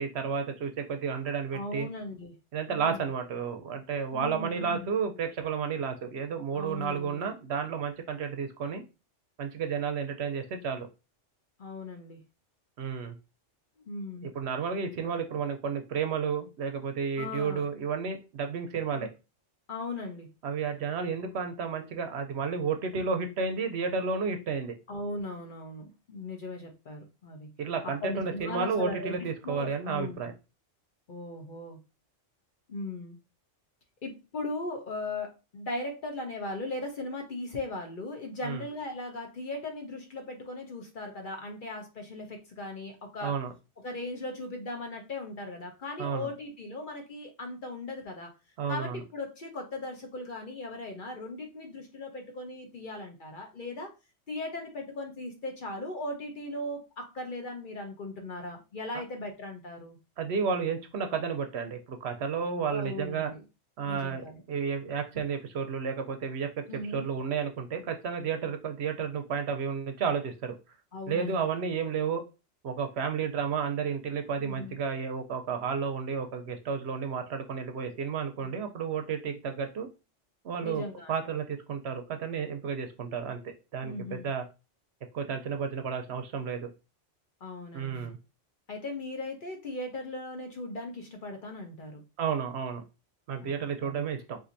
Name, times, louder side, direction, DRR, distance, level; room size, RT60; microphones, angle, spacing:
voice 1, 0.0-1.9 2.5-8.8 9.4-10.9 12.8-13.1 14.3-19.1 20.4-24.8 27.6-30.3 38.4-38.6 43.2-43.5 46.0-46.3 48.6-49.0 60.2-63.3 63.8-70.5 71.1-72.2 72.6-79.9 80.4-80.8 81.1-84.4 85.1-86.7 87.7-88.2 92.2-92.8 93.3-94.4, right 6 dB, 70° right, 6 dB, 0.8 m, -32 dB
voice 2, 1.5-2.3 2.7-3.1 4.1-4.9 6.5-7.3 11.6-12.2 13.9-14.3 17.2-17.6 18.9-19.1 19.7-20.3 24.9-27.5 27.8-30.3 31.1-31.8 32.7-33.2 34.0-43.4 43.8-48.3 48.7-53.9 54.3-60.0 62.7-63.4 63.8-64.4 66.7-67.1 70.9-71.4 74.4-74.8 78.4-78.6 80.6-81.1 83.8-84.3 87.4-88.1 88.7-92.0 93.4-94.1, left 2 dB, 50° left, 2 dB, 0.8 m, -38 dB
4.3 x 2.6 x 2.6 m, 0.29 s
omnidirectional pair, 1.3 m